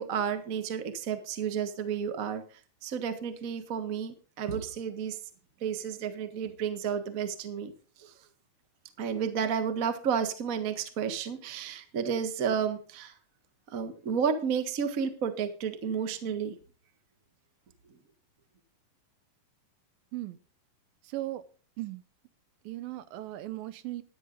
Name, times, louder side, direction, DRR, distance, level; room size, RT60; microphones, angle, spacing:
voice 1, 0.0-2.4 2.8-5.2 5.6-7.7 8.0-8.1 9.0-13.1 13.7-16.5, right 7 dB, 50° right, 9 dB, 0.9 m, -31 dB
voice 2, 21.0-21.4 21.8-22.0 22.6-24.0, right 16 dB, 90° right, 14 dB, 2.7 m, -37 dB
14.0 x 11.0 x 3.9 m, 0.38 s
omnidirectional pair, 4.0 m